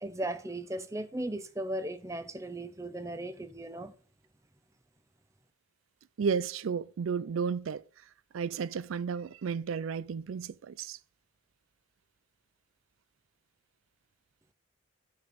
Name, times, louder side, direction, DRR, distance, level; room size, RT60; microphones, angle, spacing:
voice 1, 0.0-3.9, right 1 dB, 15° right, 0.6 m, -37 dB
voice 2, 6.2-7.8 8.3-11.0, right 6 dB, 90° right, 0.4 m, -33 dB
9.4 x 5.2 x 5.2 m
head